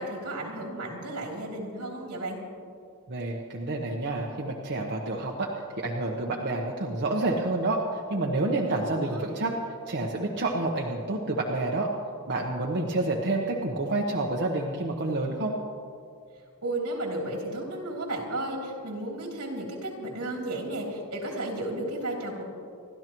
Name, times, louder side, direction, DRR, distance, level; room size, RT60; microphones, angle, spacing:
voice 1, 0.0-2.4 8.7-9.3 16.6-22.4, right 1 dB, 80° right, -1 dB, 3.2 m, -33 dB
voice 2, 3.1-5.5 5.8-9.5 9.9-11.9 12.3-15.6, right 2 dB, 50° right, -1 dB, 1.0 m, -28 dB
28.5 x 12.0 x 3.1 m, 2.4 s
head